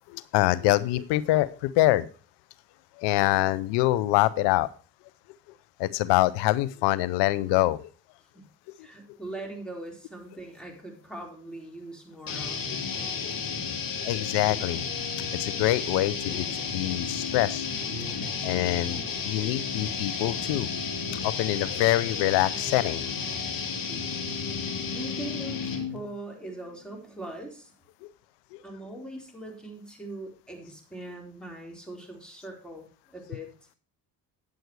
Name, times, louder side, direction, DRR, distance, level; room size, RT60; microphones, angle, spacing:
voice 1, 0.1-2.1 3.0-4.7 5.8-7.9 14.0-14.8 15.2-17.7 18.4-20.8 21.1-23.1 24.5-24.6 28.5-28.6, left 16 dB, 90° left, 17 dB, 0.6 m, -25 dB
voice 2, 8.8-12.8 23.9-27.7 28.6-33.7, right 2 dB, ahead, 1 dB, 4.0 m, -41 dB
sound 1, 12.3-26.0, left 5 dB, 55° left, 2.5 m, -32 dB
9.4 x 7.8 x 4.7 m, 0.37 s
supercardioid pair, 65°, 41 cm